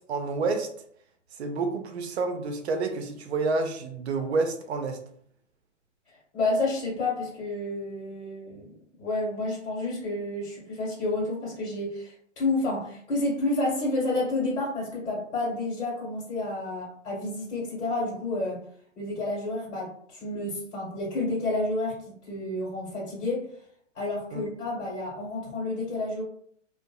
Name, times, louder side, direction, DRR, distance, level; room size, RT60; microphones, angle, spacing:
voice 1, 0.1-0.7 1.4-5.0 24.3-24.4, right 3 dB, 60° right, 5 dB, 0.6 m, -29 dB
voice 2, 6.3-8.7 9.0-18.6 19.0-23.5 23.9-26.2, left 2 dB, 65° left, -5 dB, 1.3 m, -30 dB
2.6 x 2.4 x 2.2 m, 0.63 s
hypercardioid pair, 135°, 37 cm